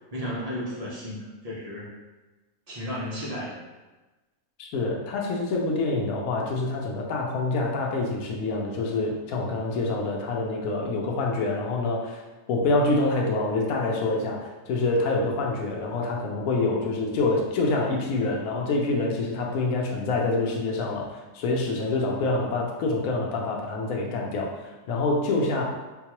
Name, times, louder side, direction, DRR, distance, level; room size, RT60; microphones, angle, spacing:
voice 1, 0.1-1.9 2.7-3.6, equal, 40° right, -6 dB, 0.6 m, -33 dB
voice 2, 4.6-12.2 12.5-24.6 24.9-25.6, left 2 dB, 80° left, -1 dB, 1.1 m, -26 dB
3.8 x 2.3 x 2.9 m, 1.2 s
omnidirectional pair, 1.5 m